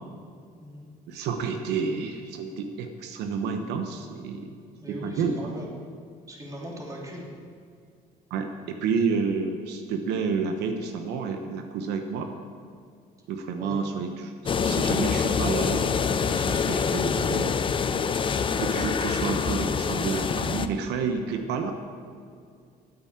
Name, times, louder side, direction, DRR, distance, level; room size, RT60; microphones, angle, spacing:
voice 1, 1.1-4.5 4.9-5.7 8.3-12.3 13.3-17.6 18.6-21.7, right 5 dB, 85° right, 5 dB, 1.0 m, -30 dB
voice 2, 4.8-5.7 6.3-7.3 13.6-13.8, equal, 20° right, -2 dB, 3.1 m, -39 dB
sound 1, 14.5-20.7, left 6 dB, 30° left, 0.6 m, -25 dB
9.6 x 8.9 x 8.7 m, 2.2 s
cardioid pair, 110°, 17 cm